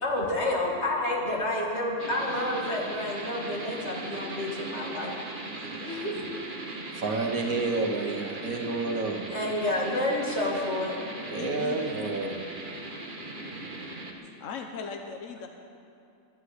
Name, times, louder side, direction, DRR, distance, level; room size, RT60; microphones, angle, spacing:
voice 1, 0.0-5.1 5.8-6.1 9.3-11.0, left 1 dB, 55° left, -2 dB, 2.6 m, -29 dB
sound 1, 2.0-14.1, right 2 dB, 40° right, 1.6 m, -38 dB
voice 2, 6.9-9.2 11.3-12.4, right 3 dB, 85° right, 2 dB, 1.6 m, -30 dB
voice 3, 11.2-12.0 14.4-15.5, left 5 dB, 70° left, 4 dB, 1.3 m, -38 dB
11.5 x 10.5 x 9.6 m, 2.6 s
omnidirectional pair, 1.4 m